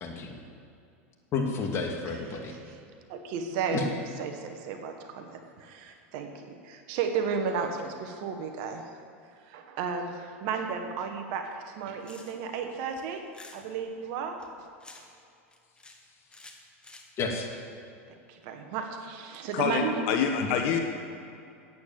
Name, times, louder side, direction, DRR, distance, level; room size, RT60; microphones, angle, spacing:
voice 1, 0.0-0.3 1.3-2.5 3.7-3.8 17.2-17.5 20.4-20.5, left 4 dB, 35° left, 1 dB, 2.2 m, -31 dB
voice 2, 3.1-3.9 4.2-8.8 9.5-13.2 13.5-14.4 18.3-19.9, right 6 dB, 60° right, 5 dB, 1.4 m, -33 dB
sound 1, 11.8-12.6 13.0-13.6 14.4-15.2 15.5-16.0 16.3-17.4, left 2 dB, 10° left, 1.4 m, -50 dB
voice 3, 19.5-20.8, left 7 dB, 60° left, 4 dB, 1.2 m, -26 dB
9.4 x 8.6 x 7.5 m, 2.5 s
hypercardioid pair, 100°, 7 cm